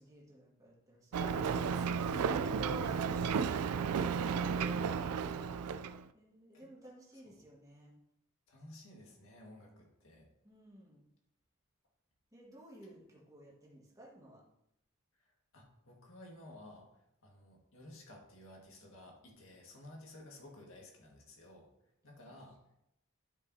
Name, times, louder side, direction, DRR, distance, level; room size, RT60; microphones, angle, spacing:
voice 1, 0.0-2.2 6.1-7.9 10.4-11.0 12.3-14.5 22.1-22.4, right 1 dB, 15° right, -4 dB, 1.8 m, -57 dB
Ocean, 1.1-6.0, right 6 dB, 85° right, 0.4 m, -33 dB
voice 2, 1.8-3.5 3.8-4.1 4.5-4.7 7.2-7.3 8.5-10.3 15.2-16.9 17.2-21.7 22.0-22.6, left 1 dB, 65° left, -1 dB, 1.8 m, -55 dB
11.5 x 5.4 x 2.8 m, 0.82 s
head